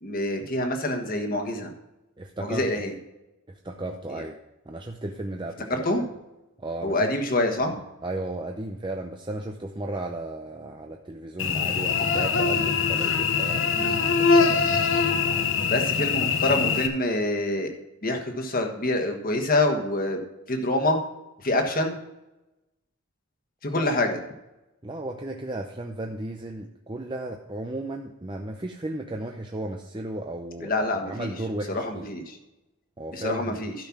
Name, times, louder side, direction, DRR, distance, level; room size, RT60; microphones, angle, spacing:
voice 1, 0.0-1.7 2.4-2.9 4.1-4.2 5.7-6.1 6.8-7.8 13.7-13.9 15.7-17.7 18.0-20.2 20.5-21.0 21.4-22.0 23.6-24.2 30.6-31.3 31.7-32.4 33.1-33.7, left 1 dB, 40° left, 4 dB, 1.5 m, -26 dB
voice 2, 2.2-2.7 3.5-4.4 4.7-5.9 6.6-7.0 8.0-14.8 24.8-32.1 33.0-33.6, right 2 dB, 20° right, 3 dB, 0.6 m, -35 dB
Cricket / Buzz, 11.4-16.9, left 5 dB, 60° left, 1.0 m, -23 dB
12.0 x 5.6 x 5.9 m, 0.97 s
head